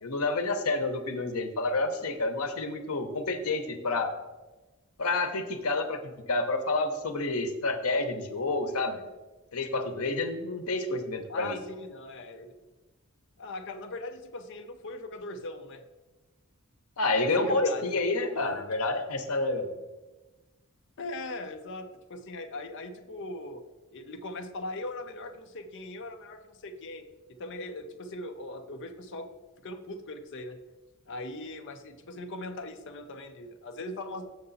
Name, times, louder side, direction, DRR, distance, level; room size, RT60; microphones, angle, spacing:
voice 1, 0.0-4.1 5.0-9.0 9.5-11.6 17.0-19.7, left 2 dB, 90° left, 6 dB, 0.9 m, -29 dB
voice 2, 11.3-12.5 13.4-15.8 17.4-18.1 18.3-18.6 21.0-23.6 23.9-27.1 27.4-29.3 29.6-30.6 31.1-34.3, left 2 dB, 60° left, 5 dB, 0.6 m, -40 dB
6.7 x 6.7 x 4.0 m, 1.2 s
head